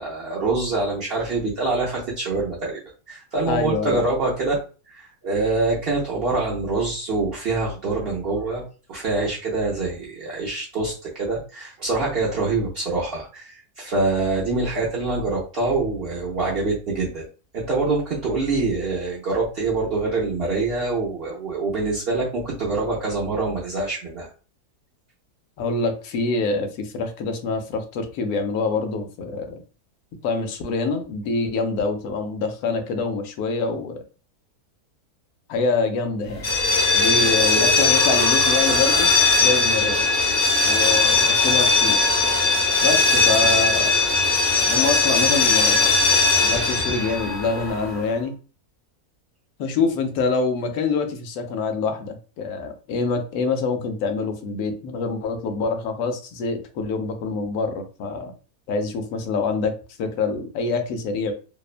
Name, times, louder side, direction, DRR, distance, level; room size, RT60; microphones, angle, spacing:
voice 1, 0.0-2.8 3.1-4.6 4.9-8.6 8.9-17.3 17.5-24.3 46.5-46.6, right 3 dB, 60° right, -5 dB, 0.6 m, -25 dB
voice 2, 3.5-4.0 25.6-29.4 30.2-34.0 35.5-36.5 36.9-40.1 40.6-42.0 42.8-43.9 44.7-45.9 46.4-48.3 49.6-58.3 58.7-59.7 60.0-61.3, left 4 dB, 75° left, 6 dB, 1.0 m, -25 dB
sound 1, 36.4-48.1, left 3 dB, 40° left, 1.0 m, -19 dB
2.8 x 2.0 x 2.4 m, 0.36 s
omnidirectional pair, 1.7 m